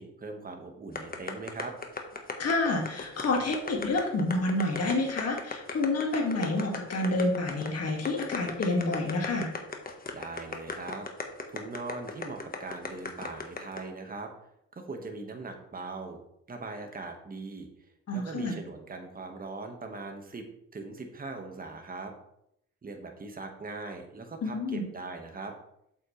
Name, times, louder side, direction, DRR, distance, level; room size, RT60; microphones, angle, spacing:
voice 1, 0.0-1.7 10.1-14.3 14.7-16.2 16.5-17.7 18.1-20.5 20.7-22.1 22.8-25.5, right 3 dB, 30° right, 4 dB, 1.6 m, -40 dB
sound 1, 0.9-13.8, left 4 dB, 30° left, 1.4 m, -36 dB
voice 2, 2.4-9.5 18.1-18.5 24.4-24.8, left 2 dB, 55° left, 0 dB, 2.3 m, -28 dB
7.8 x 7.8 x 3.3 m, 0.76 s
cardioid pair, 90°, 30 cm